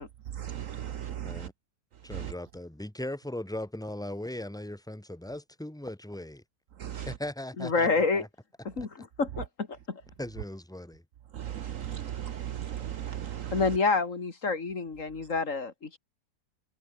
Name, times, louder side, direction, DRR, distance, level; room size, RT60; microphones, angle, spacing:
voice 1, 0.3-1.5 2.1-2.3 6.8-7.2 11.3-13.8, right 10 dB, 60° right, 1.0 m, -36 dB
voice 2, 2.0-6.4 6.9-7.9 8.1-8.3 10.2-11.0, left 1 dB, ahead, 2.0 m, -38 dB
voice 3, 7.6-8.2 8.6-10.0 13.5-16.0, left 4 dB, 50° left, 2.6 m, -28 dB
omnidirectional pair, 1.7 m